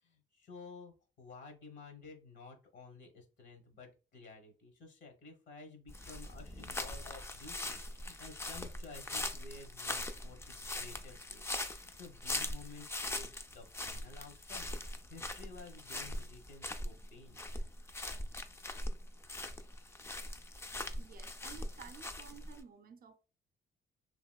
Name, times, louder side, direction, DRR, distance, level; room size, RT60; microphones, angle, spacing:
voice 1, 0.0-14.7 15.1-17.4, left 4 dB, 65° left, 1.1 m, -53 dB
sound 1, 5.9-22.6, left 1 dB, 15° left, 0.3 m, -41 dB
voice 2, 21.0-23.2, right 7 dB, 50° right, 0.5 m, -53 dB
3.0 x 2.8 x 2.2 m
cardioid pair, 90°, 20 cm